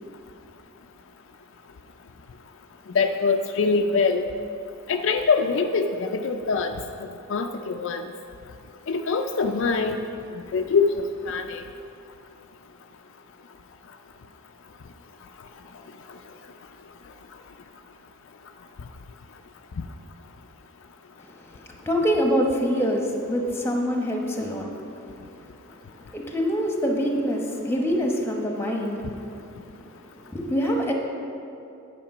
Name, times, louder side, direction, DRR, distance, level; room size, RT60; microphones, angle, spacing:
voice 1, 2.9-4.3 4.9-6.7 7.3-8.1 8.9-10.0 10.5-11.6, left 4 dB, 60° left, 5 dB, 0.4 m, -23 dB
voice 2, 21.9-24.6 26.1-29.0 30.3-30.9, equal, 10° left, 1 dB, 1.0 m, -24 dB
10.0 x 5.2 x 5.9 m, 2.6 s
head